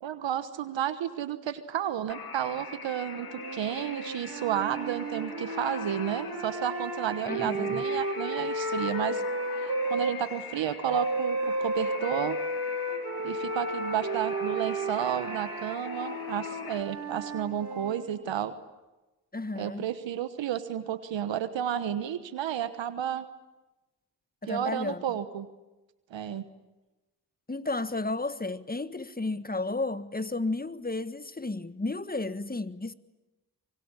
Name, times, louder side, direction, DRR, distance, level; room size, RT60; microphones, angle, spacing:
voice 1, 0.0-9.2 9.6-12.4 13.2-18.5 19.5-23.2 24.5-25.5 26.1-26.4, right 10 dB, 75° right, 1.3 m, -32 dB
sound 1, 2.1-16.8, left 4 dB, 50° left, 3.2 m, -43 dB
sound 2, 3.2-10.2 10.9-18.1, right 1 dB, 40° right, 6.7 m, -33 dB
voice 2, 7.3-7.8 19.3-19.8 24.4-25.0 27.5-32.9, left 2 dB, 20° left, 1.5 m, -32 dB
25.0 x 22.0 x 9.9 m
supercardioid pair, 40°, 45 cm